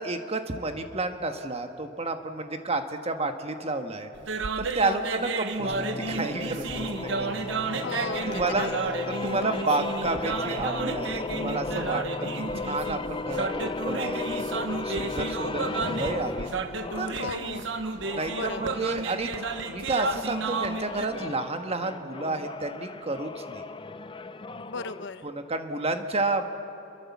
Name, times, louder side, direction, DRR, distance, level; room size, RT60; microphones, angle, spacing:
voice 1, 0.0-4.1 4.6-7.5 8.1-12.3 12.6-14.4 14.8-16.5 16.9-17.3 18.1-23.6 25.2-26.4, right 2 dB, 30° right, 6 dB, 1.4 m, -31 dB
sound 1, 4.2-21.1, right 4 dB, 70° right, 1.2 m, -32 dB
voice 2, 4.8-5.2 7.8-8.2 8.5-8.8 17.2-17.7 18.3-18.8 24.6-25.2, left 4 dB, 65° left, 11 dB, 0.9 m, -36 dB
sound 2, 5.6-17.3 17.9-25.1, left 3 dB, 25° left, 0.6 m, -35 dB
27.0 x 23.0 x 7.3 m, 2.8 s
head